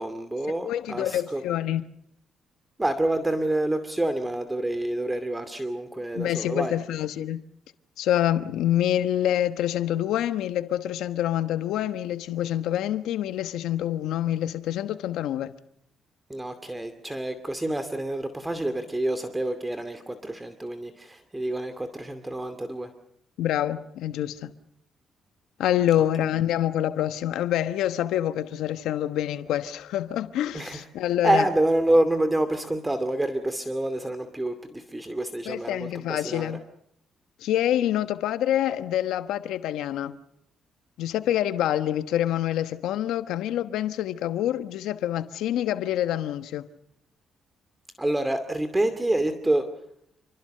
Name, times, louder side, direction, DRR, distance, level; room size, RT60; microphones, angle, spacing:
voice 1, 0.0-1.4 2.8-6.8 16.3-22.9 30.5-30.9 31.2-36.5 48.0-49.7, right 1 dB, 15° right, 2.4 m, -27 dB
voice 2, 0.6-1.8 6.1-7.4 8.0-15.5 23.4-24.5 25.6-31.4 35.5-36.6 37.4-40.2 41.0-46.6, left 12 dB, 85° left, 1.1 m, -26 dB
29.0 x 22.5 x 6.7 m
cardioid pair, 90°, 0 cm